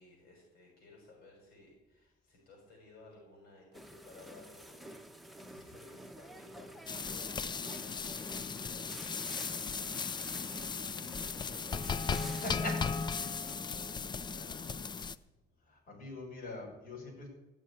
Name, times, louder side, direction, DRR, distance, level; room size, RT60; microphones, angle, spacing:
voice 1, 0.0-12.7 13.4-15.1, left 2 dB, 65° left, 0 dB, 6.5 m, -57 dB
sound 1, 3.7-13.6, equal, ahead, 1.2 m, -50 dB
sound 2, 6.9-15.2, left 5 dB, 25° left, 0.6 m, -37 dB
voice 2, 12.2-13.2 15.6-17.3, left 2 dB, 50° left, -2 dB, 6.8 m, -42 dB
16.5 x 6.9 x 9.8 m, 1.0 s
cardioid pair, 110°, 17 cm